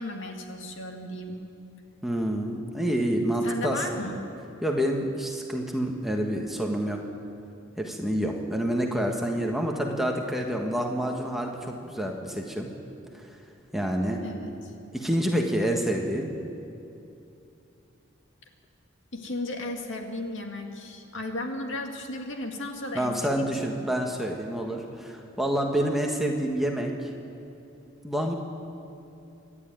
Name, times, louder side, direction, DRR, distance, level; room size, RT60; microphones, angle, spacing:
voice 1, 0.0-1.4 3.4-4.2 14.2-14.7 19.1-23.5 23.8-23.9, left 2 dB, 65° left, 3 dB, 2.2 m, -35 dB
voice 2, 2.0-4.1 4.6-7.0 7.8-12.7 13.1-13.4 13.7-14.2 14.9-16.3 22.9-27.1 28.0-28.3, equal, ahead, 0 dB, 1.5 m, -28 dB
26.0 x 11.0 x 9.3 m, 2.8 s
head